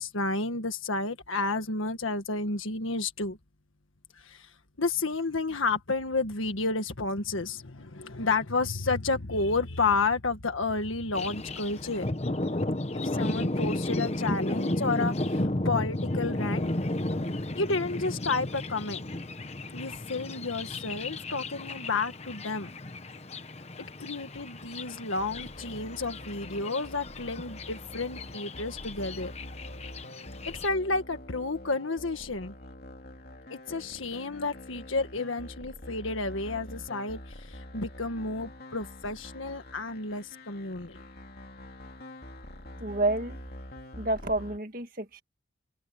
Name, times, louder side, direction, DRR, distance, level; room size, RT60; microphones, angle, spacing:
voice 1, 0.0-3.4 4.2-4.5 4.8-12.1 13.1-16.7 17.6-19.0 19.7-22.7 24.0-29.3 30.5-32.5 33.5-41.0, left 3 dB, 85° left, 1.7 m, -31 dB
Thunder, 11.1-30.7, left 1 dB, 35° left, 1.1 m, -33 dB
sound 1, 25.2-44.6, left 1 dB, 50° left, 2.9 m, -46 dB
voice 2, 42.8-43.4 44.0-45.2, right 2 dB, 45° right, 1.8 m, -29 dB
open air
head